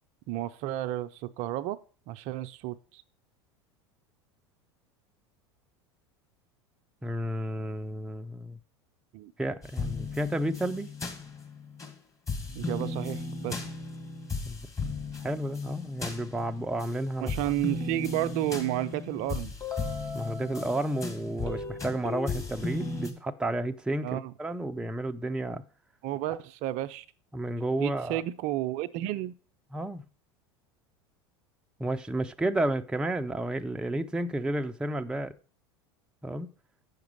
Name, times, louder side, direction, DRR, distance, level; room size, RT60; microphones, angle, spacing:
voice 1, 0.3-1.8 2.1-3.0 9.1-9.3 12.5-13.7 17.2-19.5 24.0-24.3 26.0-27.0 27.8-29.3, right 14 dB, 55° right, 0.5 m, -32 dB
voice 2, 7.0-8.6 9.4-10.9 14.5-14.6 15.2-17.3 20.1-25.6 27.3-28.2 29.7-30.0 31.8-35.3 36.2-36.5, right 1 dB, 5° right, 0.5 m, -31 dB
sound 1, 9.6-11.9 12.3-16.9 17.3-23.1, left 3 dB, 20° left, 1.9 m, -35 dB
7.9 x 5.9 x 5.3 m
hypercardioid pair, 85°, 14 cm